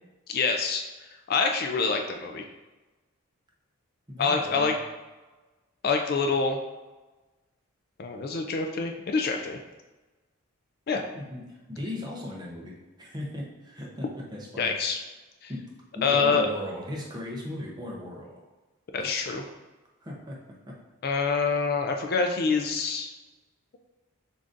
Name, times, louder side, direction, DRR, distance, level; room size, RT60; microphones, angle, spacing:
voice 1, 0.3-2.4 4.2-4.7 5.8-6.6 8.0-9.6 10.9-11.0 14.6-15.0 15.4-15.5 16.0-16.5 18.9-19.4 21.0-23.1, left 4 dB, 45° left, 4 dB, 0.3 m, -26 dB
voice 2, 4.1-4.7 11.1-14.1 14.3-14.7 15.5-15.6 15.9-18.3 19.0-19.1 20.0-20.4 20.7-20.8, left 1 dB, 20° right, -3 dB, 0.7 m, -37 dB
6.8 x 2.7 x 2.5 m, 1.2 s
head